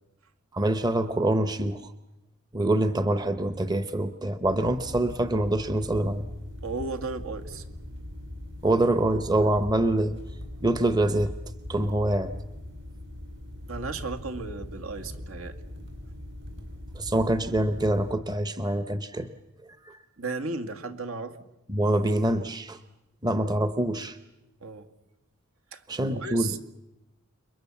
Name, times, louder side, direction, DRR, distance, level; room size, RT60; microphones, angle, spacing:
voice 1, 0.5-1.9 2.5-6.3 8.6-10.1 10.6-11.3 11.7-12.3 17.0-19.3 19.9-20.0 21.7-22.8 23.2-24.2 25.9-26.6, right 1 dB, 20° right, 10 dB, 0.8 m, -25 dB
sound 1, 4.4-18.1, left 1 dB, 55° right, 5.6 m, -41 dB
voice 2, 6.6-7.6 13.7-15.6 20.2-21.4 24.6-24.9 25.7-26.6, right 3 dB, 75° right, 6 dB, 2.1 m, -35 dB
29.0 x 23.0 x 7.3 m, 0.94 s
head